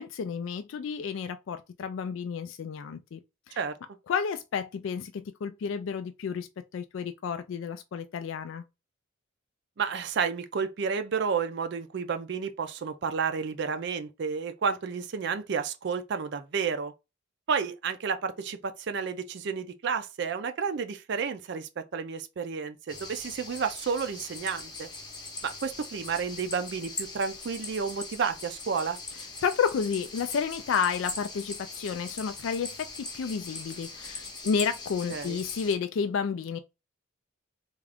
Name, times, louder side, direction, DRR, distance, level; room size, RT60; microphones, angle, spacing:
voice 1, 0.0-3.2 3.5-3.6 4.1-6.5 6.7-8.6 29.4-36.6, left 6 dB, 70° left, 0.3 m, -31 dB
voice 2, 9.8-16.9 17.5-24.9 25.4-29.0 35.1-35.4, right 6 dB, 60° right, 0.4 m, -31 dB
sound 1, 22.9-35.7, left 3 dB, 20° left, 0.7 m, -41 dB
3.6 x 2.4 x 3.4 m
head